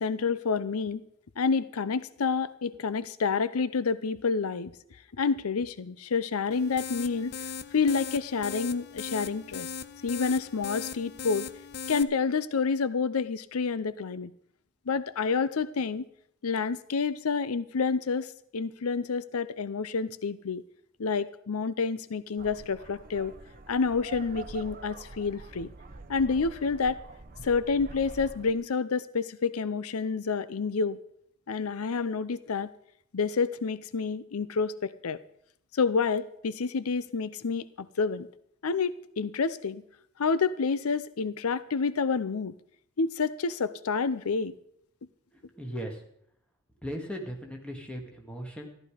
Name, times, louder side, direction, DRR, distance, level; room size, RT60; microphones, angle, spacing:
voice 1, 0.0-1.0 1.4-4.7 5.2-9.7 10.0-11.5 11.9-14.3 14.9-16.0 16.4-20.6 21.0-23.3 23.7-25.7 26.1-27.0 27.4-31.0 31.5-32.7 33.1-35.2 35.7-38.3 38.6-39.8 40.2-42.5 43.0-44.5, left 5 dB, 85° left, 16 dB, 0.6 m, -29 dB
sound 1, 6.5-12.0, left 6 dB, 50° left, 0.7 m, -39 dB
sound 2, 22.4-28.5, right 3 dB, 45° right, 0.9 m, -45 dB
voice 2, 45.3-46.0 46.8-48.7, equal, 5° left, 2 dB, 2.2 m, -38 dB
14.0 x 12.0 x 5.0 m, 0.69 s
head